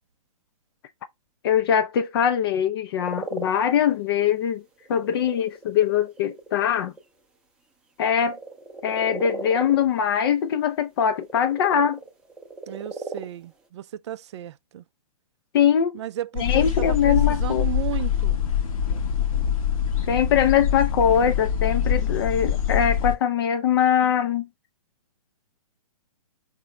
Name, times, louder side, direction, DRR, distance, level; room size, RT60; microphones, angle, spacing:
voice 1, 1.4-4.6 4.9-6.9 8.0-8.4 8.8-12.0 15.5-16.0 16.4-17.6 20.1-24.5, left 8 dB, 40° left, 0.4 m, -22 dB
sound 1, 3.0-3.6 4.1-4.2 4.8-7.0 8.1-9.9 11.1-13.3, right 3 dB, 5° right, 0.6 m, -36 dB
voice 2, 12.7-14.8 15.9-18.4, right 11 dB, 50° right, 0.4 m, -34 dB
sound 2, 16.4-23.2, left 8 dB, 60° left, 1.0 m, -24 dB
3.9 x 2.7 x 4.2 m
figure-of-eight pair, 120°, 19 cm